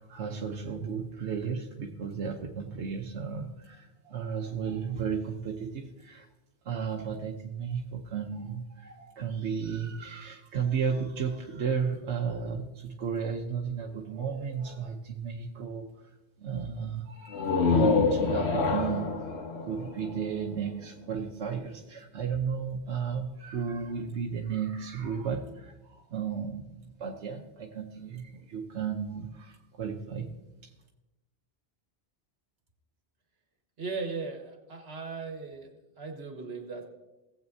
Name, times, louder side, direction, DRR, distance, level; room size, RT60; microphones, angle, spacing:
voice 1, 0.0-6.3 6.6-16.1 16.4-30.3, right 6 dB, 90° right, 1 dB, 1.1 m, -34 dB
sound 1, 17.3-20.9, left 4 dB, 75° left, 1.1 m, -27 dB
voice 2, 33.8-35.7 36.0-36.9, right 4 dB, 70° right, 3 dB, 1.7 m, -37 dB
18.0 x 8.0 x 2.7 m, 1.0 s
omnidirectional pair, 1.1 m